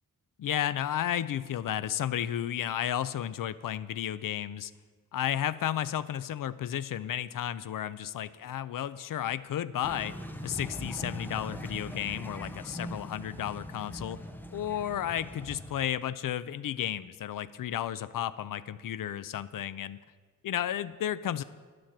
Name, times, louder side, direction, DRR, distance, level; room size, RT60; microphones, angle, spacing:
voice 1, 0.4-4.7 5.1-10.2 10.4-14.2 14.5-20.0 20.4-21.4, left 10 dB, 70° left, 16 dB, 0.5 m, -33 dB
sound 1, 9.8-15.7, equal, 5° left, 0.6 m, -41 dB
10.5 x 6.2 x 8.6 m, 1.5 s
wide cardioid pair, 160°, 34 cm